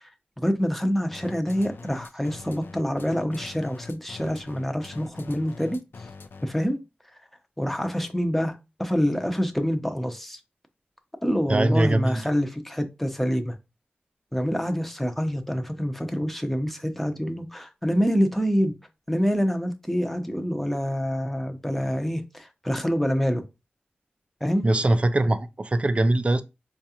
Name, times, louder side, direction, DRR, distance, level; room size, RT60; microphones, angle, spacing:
voice 1, 0.4-5.8 6.4-6.8 7.6-10.4 11.2-13.6 14.3-18.7 19.1-23.4 24.4-24.7, equal, 5° left, 0.7 m, -26 dB
sound 1, 1.1-6.7, left 4 dB, 80° left, 0.4 m, -43 dB
voice 2, 11.5-12.2 24.6-26.4, right 2 dB, 35° right, 0.4 m, -22 dB
4.5 x 2.4 x 2.8 m
wide cardioid pair, 60°, 4 cm